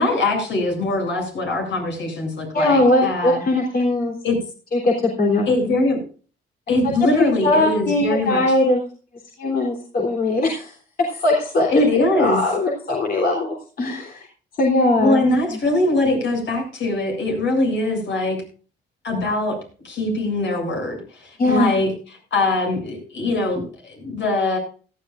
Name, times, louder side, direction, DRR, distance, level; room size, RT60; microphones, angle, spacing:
voice 1, 0.0-3.4 4.2-4.4 5.5-6.0 6.7-8.4 11.7-12.4 15.0-18.4 19.0-19.5 19.8-21.9 22.3-24.6, left 2 dB, 65° left, 2 dB, 7.8 m, -22 dB
voice 2, 2.5-4.2 4.7-5.5 7.2-8.8 9.4-11.8 12.1-14.3 14.6-15.6 21.4-21.8, left 2 dB, 50° left, 0 dB, 3.5 m, -20 dB
18.0 x 14.0 x 2.5 m, 0.39 s
cardioid pair, 90°, 20 cm